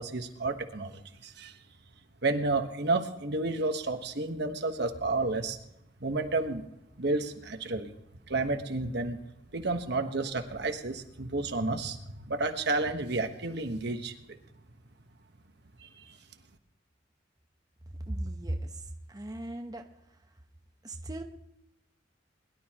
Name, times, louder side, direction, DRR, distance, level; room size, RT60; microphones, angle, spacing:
voice 1, 0.0-1.6 2.2-5.6 6.0-6.6 7.0-7.9 8.3-9.2 9.5-14.2 15.8-16.2, right 3 dB, 60° right, 6 dB, 1.3 m, -31 dB
voice 2, 18.0-19.9 20.8-21.2, right 1 dB, 20° right, 3 dB, 1.0 m, -37 dB
22.0 x 12.0 x 3.0 m, 0.84 s
head